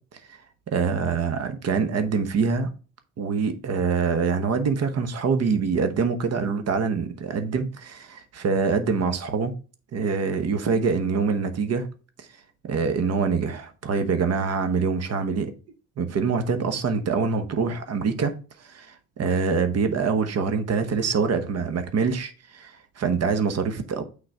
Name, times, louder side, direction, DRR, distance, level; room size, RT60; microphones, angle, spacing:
voice 1, 0.7-2.7 3.2-9.5 9.9-11.9 12.6-15.5 16.0-24.0, right 5 dB, 55° right, 1.0 m, -25 dB
6.3 x 3.8 x 4.6 m
cardioid pair, 90°, 30 cm